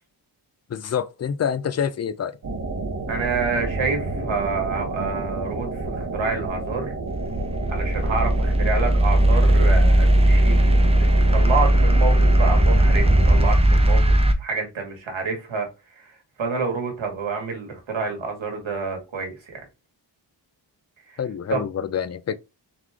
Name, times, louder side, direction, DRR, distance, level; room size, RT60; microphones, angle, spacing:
voice 1, 0.7-2.4 21.2-22.4, left 7 dB, 35° left, 0.4 m, -27 dB
sound 1, 2.4-13.5, right 2 dB, 40° right, 0.9 m, -30 dB
voice 2, 3.1-6.9 7.7-19.6 21.1-21.2 21.5-21.6, right 4 dB, 75° right, 1.7 m, -28 dB
sound 2, 7.1-14.3, right 1 dB, 15° right, 0.6 m, -17 dB
4.0 x 3.1 x 3.5 m
wide cardioid pair, 80°, 47 cm